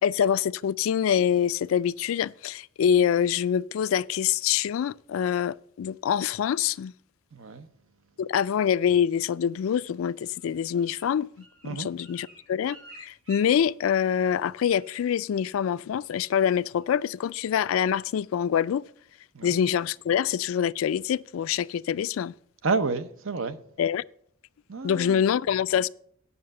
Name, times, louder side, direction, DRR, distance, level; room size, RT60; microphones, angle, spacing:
voice 1, 0.0-6.9 8.2-18.8 19.4-22.3 23.8-24.0 24.8-25.9, left 8 dB, 75° left, 0.3 m, -25 dB
voice 2, 7.3-7.7 11.6-11.9 19.3-19.6 22.6-23.6 24.7-25.2, right 4 dB, 70° right, 0.7 m, -30 dB
Bird, 10.3-14.4 14.7-15.1 15.3-15.7 16.0-16.4 16.8-16.9, right 2 dB, 85° right, 4.4 m, -52 dB
9.7 x 5.6 x 6.4 m
head